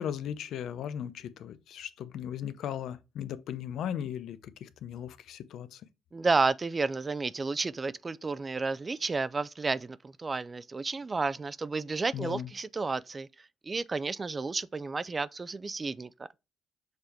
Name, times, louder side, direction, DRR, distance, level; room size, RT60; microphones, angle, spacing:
voice 1, 0.0-5.8 12.1-12.5, left 9 dB, 75° left, 0.6 m, -37 dB
voice 2, 6.1-13.3 13.6-16.1, right 4 dB, 30° right, 0.4 m, -31 dB
6.7 x 3.5 x 4.5 m
supercardioid pair, 70°, 0 cm